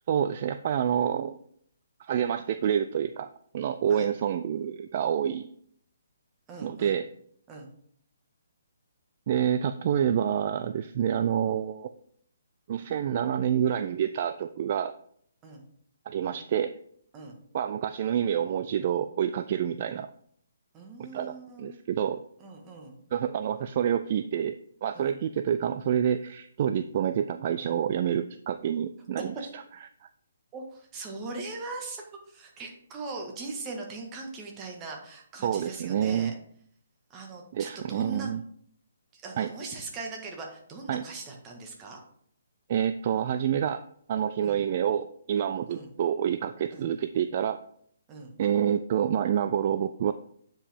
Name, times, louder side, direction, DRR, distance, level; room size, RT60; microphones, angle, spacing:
voice 1, 0.1-1.4 2.0-5.5 6.6-7.1 9.3-11.9 12.7-14.9 16.1-16.8 17.5-20.1 21.1-22.2 23.1-29.6 30.0-30.1 35.4-36.3 37.5-38.4 39.4-39.5 40.9-41.0 42.7-47.6 48.4-50.1, right 9 dB, 45° right, 10 dB, 0.3 m, -28 dB
voice 2, 6.5-6.9 7.5-7.7 15.4-15.6 17.1-17.4 20.7-21.8 22.4-23.0 24.9-25.2 29.2-29.3 30.5-36.3 37.1-38.3 39.1-42.0 44.4-44.6 45.7-45.9 46.7-46.9 48.1-48.3, right 3 dB, 20° right, 2 dB, 1.6 m, -40 dB
8.7 x 5.2 x 3.6 m, 0.65 s
figure-of-eight pair, 140°, 0 cm